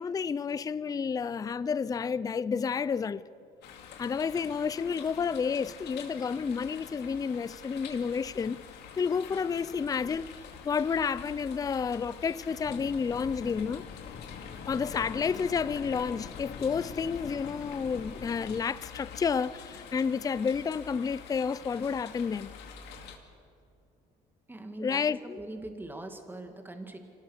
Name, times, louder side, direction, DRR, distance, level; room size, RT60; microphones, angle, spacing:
voice 1, 0.0-3.2 4.0-8.6 9.0-10.3 10.6-13.8 14.7-22.5 24.8-25.4, left 6 dB, 20° left, 0.4 m, -30 dB
sound 1, 3.6-23.2, left 7 dB, 80° left, 2.4 m, -47 dB
sound 2, 12.6-18.6, left 6 dB, 45° left, 1.3 m, -45 dB
voice 2, 24.5-27.0, right 2 dB, 10° right, 2.2 m, -42 dB
26.0 x 18.5 x 6.6 m
cardioid pair, 110°, 17 cm